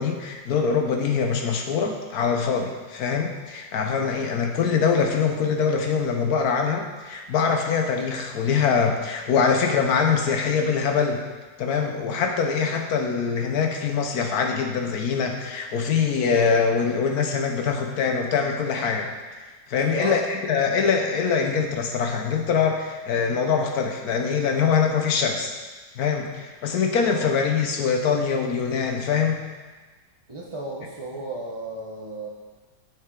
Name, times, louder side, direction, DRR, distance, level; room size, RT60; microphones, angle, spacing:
voice 1, 0.0-11.2 11.6-19.1 19.7-25.5 26.0-29.4, left 6 dB, 65° left, 3 dB, 1.2 m, -23 dB
voice 2, 19.9-20.2 27.1-27.2 30.3-32.3, right 1 dB, 50° right, -4 dB, 0.3 m, -33 dB
7.4 x 6.5 x 3.8 m, 1.3 s
omnidirectional pair, 2.0 m